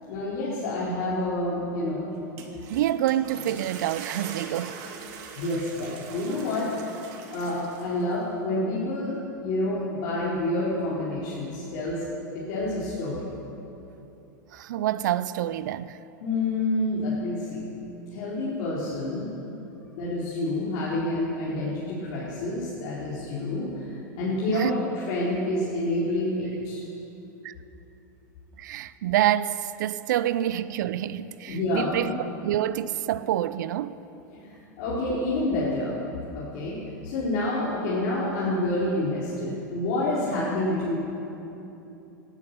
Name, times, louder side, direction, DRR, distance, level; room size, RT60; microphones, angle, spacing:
voice 1, 0.1-2.1 5.3-6.9 7.3-12.0 12.3-13.2 16.2-17.7 18.1-19.3 20.0-26.8 31.5-32.1 34.3-36.0 36.3-36.8 37.0-41.0, left 1 dB, 55° left, 4.4 m, -28 dB
sound 1, 2.1-8.2, right 6 dB, 55° right, 2.3 m, -42 dB
voice 2, 2.7-4.8 14.5-16.0 24.5-24.8 27.4-27.5 28.6-34.0, right 12 dB, 70° right, 0.5 m, -27 dB
18.5 x 11.0 x 7.1 m
hypercardioid pair, 100°, 10 cm